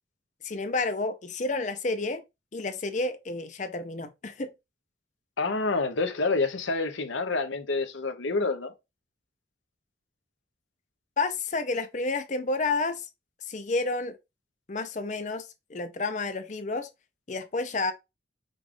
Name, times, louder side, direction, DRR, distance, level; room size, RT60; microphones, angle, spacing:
voice 1, 0.4-2.2 2.5-4.5 11.2-13.1 13.5-14.2 14.7-16.9 17.3-17.9, left 3 dB, 40° left, 0.5 m, -30 dB
voice 2, 5.4-8.7, left 3 dB, 85° left, 0.8 m, -28 dB
5.2 x 2.4 x 3.6 m
head